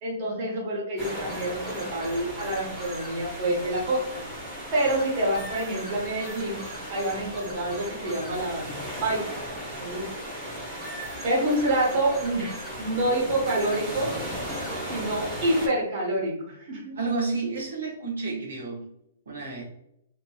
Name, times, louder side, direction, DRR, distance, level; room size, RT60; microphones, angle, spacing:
voice 1, 0.0-4.2 4.7-6.6 6.9-9.4 9.8-10.3 11.2-14.1 14.9-17.0, right 1 dB, 40° right, -3 dB, 1.2 m, -27 dB
Ocean Waves Loop - Day, 1.0-15.7, equal, 10° right, 1.0 m, -36 dB
voice 2, 16.9-18.9 19.3-19.6, right 3 dB, 80° right, -2 dB, 0.9 m, -30 dB
2.9 x 2.7 x 2.3 m, 0.76 s
hypercardioid pair, 140°, 0 cm